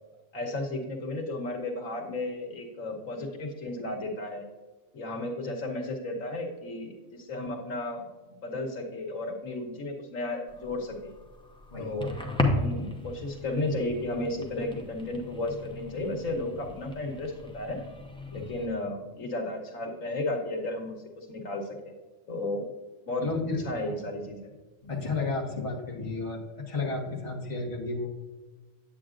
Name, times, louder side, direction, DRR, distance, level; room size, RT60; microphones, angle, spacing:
voice 1, 0.3-4.5 4.9-8.1 8.4-11.1 11.8-12.1 12.5-17.8 18.3-21.9 22.3-22.7 23.1-23.3 23.6-24.5, left 2 dB, 90° left, 3 dB, 1.5 m, -33 dB
Record Player, 10.5-18.7, left 2 dB, 5° left, 0.7 m, -35 dB
voice 2, 23.2-23.6 24.8-28.1, left 3 dB, 25° left, -2 dB, 1.3 m, -32 dB
8.9 x 8.5 x 2.5 m, 1.3 s
omnidirectional pair, 1.3 m